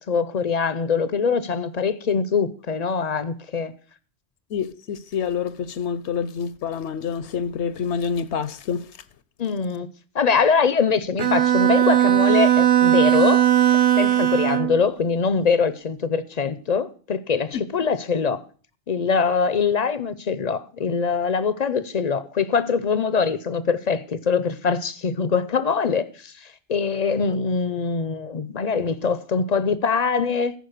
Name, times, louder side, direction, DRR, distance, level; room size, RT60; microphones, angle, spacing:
voice 1, 0.0-3.7 9.4-9.9 10.1-13.5 14.0-18.4 18.9-30.5, left 5 dB, 45° left, 0.6 m, -23 dB
voice 2, 4.5-8.9, left 7 dB, 70° left, 0.9 m, -27 dB
Bowed string instrument, 11.2-14.8, right 12 dB, 50° right, 0.9 m, -18 dB
14.0 x 5.2 x 6.5 m
omnidirectional pair, 1.2 m